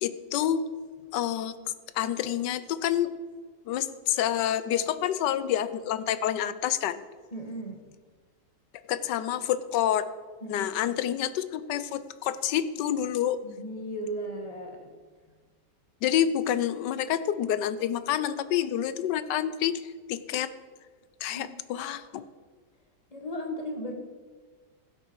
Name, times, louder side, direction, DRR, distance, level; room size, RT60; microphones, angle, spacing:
voice 1, 0.0-0.6 1.1-1.5 1.9-3.1 3.7-7.0 8.9-10.0 10.5-13.4 16.0-20.5 21.2-22.2, left 10 dB, 85° left, 13 dB, 1.3 m, -28 dB
voice 2, 7.3-7.9 10.4-10.9 13.4-14.9 15.3-15.4 21.3-21.5 23.1-23.9, equal, 20° left, 3 dB, 1.5 m, -36 dB
15.5 x 8.5 x 4.6 m, 1.5 s
omnidirectional pair, 1.8 m